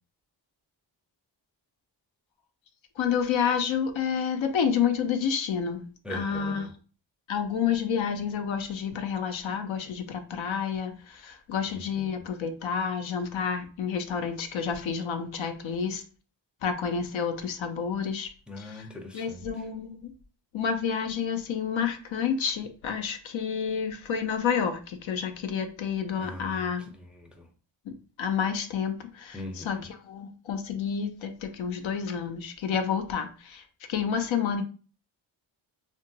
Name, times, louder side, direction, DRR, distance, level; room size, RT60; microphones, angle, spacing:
voice 1, 3.0-6.6 7.3-16.0 16.6-18.3 19.1-20.1 20.5-26.9 27.9-29.4 29.7-29.8 30.1-33.6 33.9-34.6, left 7 dB, 75° left, 0.6 m, -29 dB
voice 2, 6.0-6.7 11.6-12.2 18.5-19.7 26.2-27.5 29.3-29.9, left 1 dB, ahead, 0.5 m, -42 dB
2.9 x 2.3 x 2.7 m
cardioid pair, 65°, 47 cm